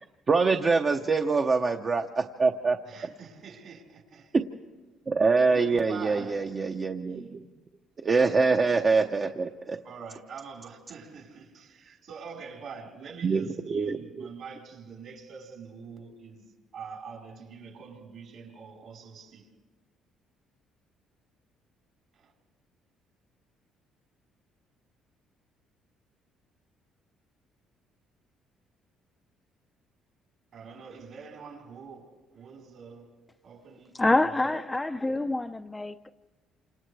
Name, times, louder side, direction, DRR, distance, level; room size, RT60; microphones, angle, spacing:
voice 1, 0.3-2.0 2.4-3.1 4.3-4.4 5.1-7.4 8.0-9.8 13.2-14.3, right 4 dB, 35° right, 0.8 m, -25 dB
voice 2, 2.9-4.3 5.5-6.4 8.1-8.3 9.8-19.5 22.1-22.3 30.5-33.1 33.4-33.9 34.2-34.6, right 5 dB, 65° right, 4.6 m, -45 dB
voice 3, 34.0-36.1, left 2 dB, 15° left, 0.5 m, -26 dB
28.0 x 27.0 x 3.4 m
cardioid pair, 90°, 0 cm